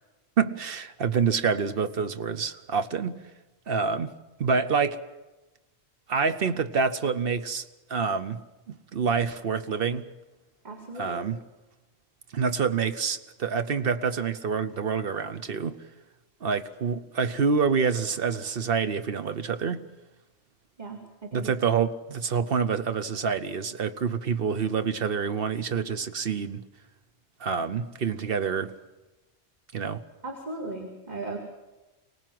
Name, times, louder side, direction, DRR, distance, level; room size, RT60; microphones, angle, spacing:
voice 1, 0.4-3.2 3.7-4.1 4.4-5.0 6.1-8.4 8.7-10.0 10.9-11.4 12.3-15.8 16.4-19.9 21.3-26.6 27.4-28.7 29.7-30.0, right 6 dB, 65° right, 1.1 m, -27 dB
voice 2, 10.6-11.3 20.8-21.5 30.2-31.4, right 2 dB, 45° right, 2.6 m, -37 dB
24.0 x 18.5 x 7.7 m
omnidirectional pair, 1.1 m